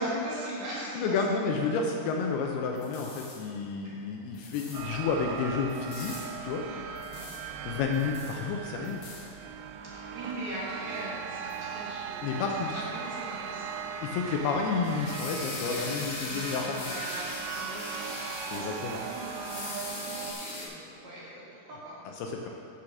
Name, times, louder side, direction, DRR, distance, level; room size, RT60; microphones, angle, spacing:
voice 1, 0.2-1.4 3.8-4.1 6.6-6.9 7.1-7.3 9.8-13.8 14.1-14.3 15.6-15.8 16.1-22.5, right 1 dB, 55° right, -8 dB, 3.4 m, -42 dB
voice 2, 1.0-6.7 7.7-9.0 12.2-12.8 14.0-16.9 18.5-19.0 22.2-22.5, left 4 dB, 80° left, 1 dB, 2.5 m, -30 dB
sound 1, 2.4-20.7, left 2 dB, 65° left, 2.6 m, -43 dB
sound 2, 4.7-20.3, right 7 dB, 90° right, 2.8 m, -39 dB
8.5 x 6.3 x 6.3 m, 2.4 s
omnidirectional pair, 4.9 m